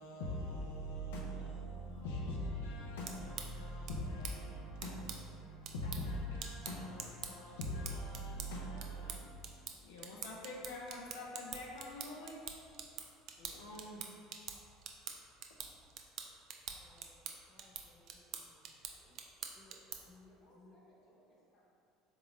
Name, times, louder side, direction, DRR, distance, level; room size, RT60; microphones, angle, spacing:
voice 1, 0.0-9.2 9.5-12.5 13.4-14.0, left 1 dB, 75° left, -3 dB, 0.4 m, -43 dB
sound 1, 2.8-20.2, right 7 dB, 55° right, 0.3 m, -48 dB
voice 2, 16.8-17.2 17.5-19.2 19.5-20.7, left 2 dB, 25° right, -4 dB, 0.8 m, -64 dB
voice 3, 20.0-21.6, equal, 50° left, -4 dB, 0.9 m, -68 dB
3.6 x 2.9 x 3.0 m, 2.6 s
figure-of-eight pair, 65°, 0 cm